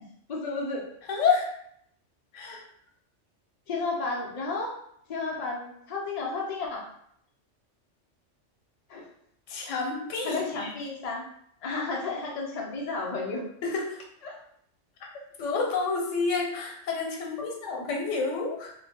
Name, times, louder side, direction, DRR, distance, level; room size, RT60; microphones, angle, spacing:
voice 1, 0.3-0.8 3.7-4.7 5.1-6.9 8.9-9.0 10.2-11.3 11.6-13.4 14.2-14.4, left 3 dB, 60° left, -1 dB, 0.4 m, -32 dB
voice 2, 1.1-1.5 2.3-2.6 9.5-10.7 13.6-14.0 15.4-18.7, left 4 dB, 80° left, 0 dB, 1.0 m, -29 dB
2.6 x 2.2 x 2.7 m, 0.70 s
omnidirectional pair, 1.3 m